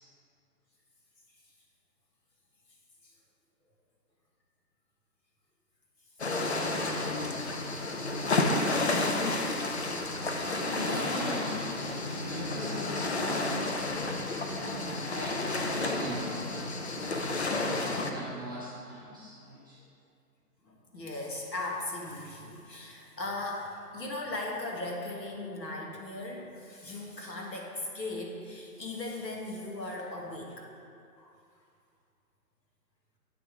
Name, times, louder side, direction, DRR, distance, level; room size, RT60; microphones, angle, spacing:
sound 1, 6.2-18.1, left 2 dB, 45° left, 0.5 m, -31 dB
voice 1, 10.5-11.6 11.8-13.7 14.9-19.8, right 1 dB, 15° right, -12 dB, 0.6 m, -40 dB
voice 2, 12.2-12.5 14.5-15.0 15.7-15.8 20.6-30.7 31.2-31.3, left 2 dB, 80° left, -1 dB, 1.6 m, -38 dB
8.4 x 3.5 x 5.0 m, 2.4 s
figure-of-eight pair, 140°, 49 cm